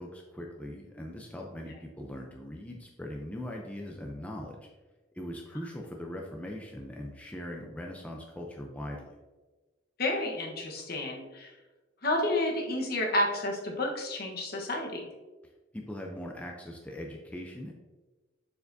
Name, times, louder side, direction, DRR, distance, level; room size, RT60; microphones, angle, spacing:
voice 1, 0.0-4.7 5.1-9.2 15.7-17.7, left 1 dB, 5° left, 0 dB, 0.6 m, -40 dB
voice 2, 10.0-11.5 12.0-15.1, left 1 dB, 50° left, 1 dB, 1.2 m, -30 dB
6.8 x 6.7 x 2.7 m, 1.2 s
head